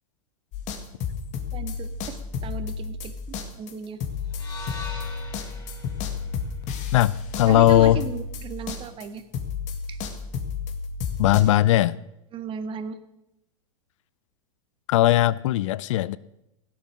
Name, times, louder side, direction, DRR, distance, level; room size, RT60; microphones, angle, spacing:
sound 1, 0.5-9.1 9.3-11.4, left 6 dB, 45° left, 2.1 m, -32 dB
voice 1, 1.5-3.1 3.6-4.0 7.5-9.2 9.9-10.0 12.3-13.0, right 7 dB, 30° right, 10 dB, 1.6 m, -35 dB
sound 2, 4.3-8.5, left 4 dB, 20° left, 4.3 m, -43 dB
voice 2, 6.9-8.0 11.2-12.0 14.9-16.2, left 13 dB, 65° left, 20 dB, 0.5 m, -19 dB
16.5 x 8.6 x 6.3 m, 0.87 s
hypercardioid pair, 110°, 17 cm